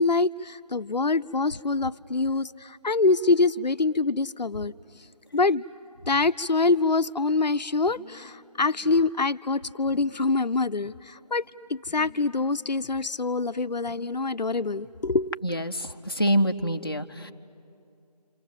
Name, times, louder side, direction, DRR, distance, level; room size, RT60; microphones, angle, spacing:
voice 1, 0.0-4.7 5.3-5.6 6.1-11.4 11.7-15.3, left 3 dB, 85° left, 13 dB, 0.6 m, -25 dB
voice 2, 15.4-17.3, equal, 35° left, 4 dB, 0.6 m, -26 dB
29.5 x 27.5 x 7.4 m, 2.6 s
figure-of-eight pair, 175°, 21 cm